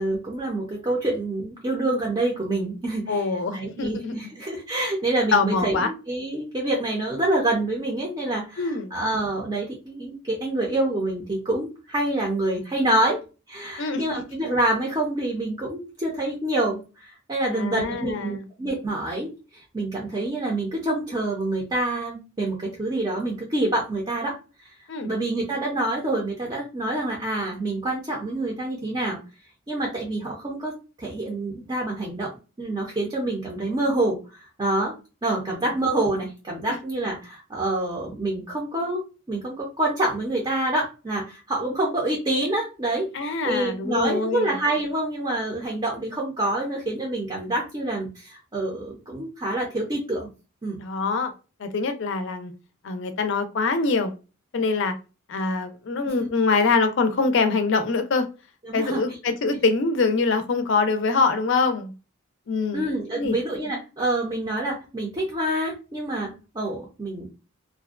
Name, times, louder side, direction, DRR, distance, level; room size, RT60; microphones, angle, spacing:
voice 1, 0.0-3.2 3.5-13.2 13.5-24.7 25.0-29.2 29.7-32.3 32.6-34.9 35.2-39.0 39.3-50.3 50.6-50.8 56.0-56.3 58.6-59.0 62.7-67.3, right 1 dB, 20° right, 0.5 m, -27 dB
voice 2, 3.1-4.2 5.3-5.9 8.6-8.9 13.8-14.0 17.5-18.4 24.9-25.1 43.1-44.6 50.8-51.3 51.6-52.5 52.8-54.2 54.5-55.0 55.3-58.3 58.7-61.9 62.5-63.3, left 4 dB, 60° left, 0.4 m, -24 dB
2.5 x 2.1 x 2.4 m
head